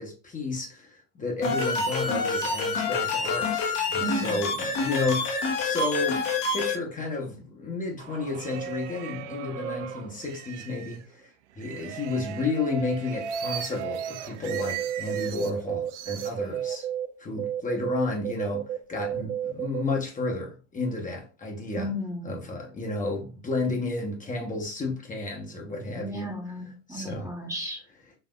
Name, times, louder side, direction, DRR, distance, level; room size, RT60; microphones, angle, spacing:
voice 1, 0.0-6.3 6.5-11.3 11.6-16.9 17.2-21.9 22.2-26.3 26.9-27.3, left 3 dB, 20° left, 0.9 m, -32 dB
sound 1, 1.4-6.8, left 3 dB, 50° left, 1.0 m, -27 dB
voice 2, 4.0-4.4 21.8-22.3 25.9-27.8, equal, 10° right, 0.9 m, -34 dB
sound 2, 8.0-11.0 11.6-15.5 15.9-16.8, right 7 dB, 70° right, 0.5 m, -37 dB
sound 3, 14.5-17.1 17.4-19.8, right 10 dB, 45° right, 1.0 m, -31 dB
4.1 x 2.7 x 2.3 m
hypercardioid pair, 80°, 37 cm